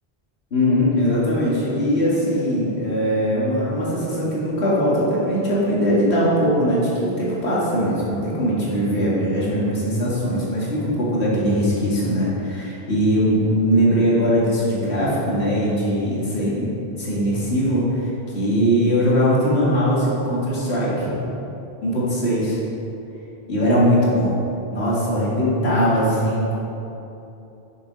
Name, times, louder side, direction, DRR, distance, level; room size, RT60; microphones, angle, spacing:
voice 1, 0.5-16.7 17.0-21.1 21.8-22.6 23.5-24.4 24.7-26.6, equal, 85° left, -7 dB, 2.3 m, -20 dB
7.1 x 6.9 x 5.2 m, 2.9 s
omnidirectional pair, 1.1 m